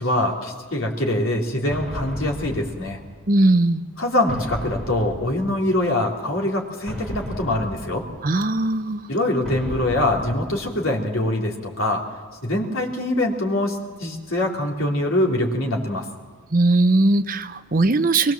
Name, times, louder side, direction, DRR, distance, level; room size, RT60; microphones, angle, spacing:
voice 1, 0.0-3.0 4.0-8.1 9.1-12.0 12.4-16.1, left 1 dB, 70° left, 0 dB, 3.5 m, -23 dB
sound 1, 1.7-3.5 4.3-6.0 6.9-8.6 9.4-11.2, equal, ahead, 4.9 m, -35 dB
voice 2, 3.3-3.8 8.2-9.0 16.5-18.3, right 2 dB, 40° right, 10 dB, 0.8 m, -19 dB
23.0 x 21.0 x 7.5 m, 1.5 s
head